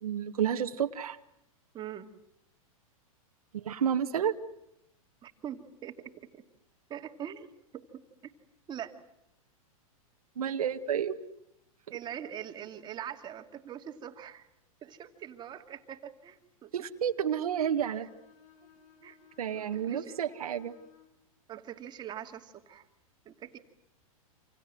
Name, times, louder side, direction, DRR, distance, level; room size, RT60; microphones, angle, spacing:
voice 1, 0.0-1.2 3.5-4.3 10.4-11.2 16.7-18.1 19.4-20.7, right 8 dB, 90° right, 5 dB, 1.7 m, -30 dB
voice 2, 1.7-2.1 5.2-6.4 6.9-7.5 7.7-8.3 8.7-8.9 11.9-14.5 14.8-16.7 17.9-18.1 18.6-18.7 19.0-19.2 19.5-20.5 21.5-22.9 23.2-23.6, right 10 dB, 25° right, 5 dB, 2.6 m, -43 dB
Bowed string instrument, 17.4-21.2, left 8 dB, 70° left, 7.1 m, -59 dB
28.0 x 27.5 x 7.8 m, 0.80 s
hypercardioid pair, 135°, 18 cm